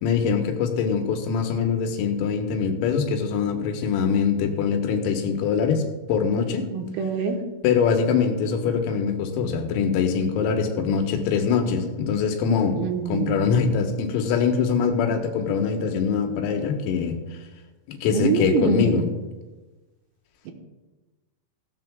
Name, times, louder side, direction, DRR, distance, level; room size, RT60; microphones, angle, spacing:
voice 1, 0.0-6.6 7.6-12.8 13.1-17.2 17.9-19.1, left 6 dB, 85° left, 3 dB, 3.9 m, -23 dB
voice 2, 6.7-7.4 12.8-13.5 18.1-19.1 20.5-20.6, right 6 dB, 90° right, 4 dB, 3.9 m, -25 dB
16.0 x 16.0 x 2.3 m, 1.2 s
omnidirectional pair, 6.0 m